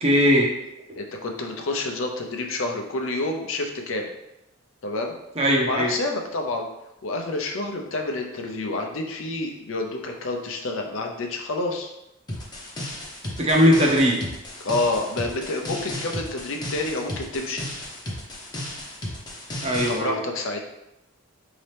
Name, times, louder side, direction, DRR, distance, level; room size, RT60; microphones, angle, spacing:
voice 1, 0.0-0.5 5.4-5.9 13.4-14.2 19.6-20.2, equal, 30° right, -1 dB, 0.6 m, -19 dB
voice 2, 1.0-4.1 4.8-5.2 5.7-6.6 7.0-11.9 14.6-17.7 19.9-20.6, left 2 dB, 70° left, 2 dB, 0.6 m, -28 dB
sound 1, 12.3-20.0, left 1 dB, 20° left, 0.7 m, -34 dB
4.1 x 2.8 x 3.3 m, 0.90 s
head